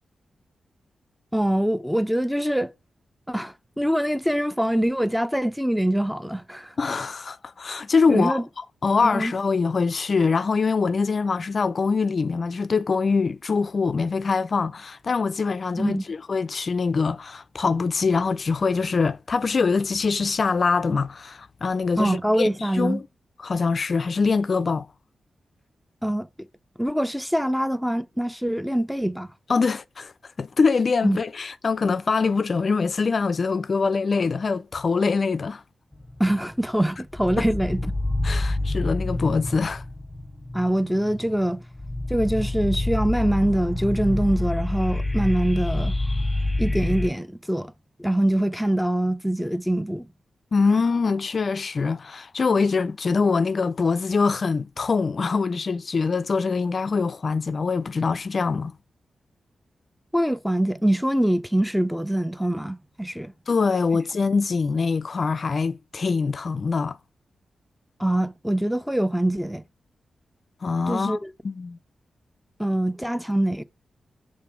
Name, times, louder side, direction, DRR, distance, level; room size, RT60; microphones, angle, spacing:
voice 1, 1.3-2.7 3.3-6.7 8.1-8.4 9.0-9.3 15.8-16.0 22.0-23.0 26.0-26.3 26.8-29.3 31.0-31.2 36.2-37.9 40.5-41.6 42.1-46.0 46.6-47.7 48.0-50.1 60.1-63.3 68.0-69.6 70.9-71.3 72.6-73.6, right 1 dB, ahead, 0.5 m, -24 dB
voice 2, 6.8-8.4 8.8-23.0 23.4-24.9 29.5-30.1 30.4-35.6 37.4-37.5 38.2-39.8 50.5-58.7 63.5-67.0 70.6-71.2 71.4-71.8, left 4 dB, 55° left, 0.3 m, -24 dB
sound 1, 35.9-36.7 37.1-47.1, left 1 dB, 15° left, 0.9 m, -27 dB
5.9 x 3.7 x 4.7 m
cardioid pair, 60°, 0 cm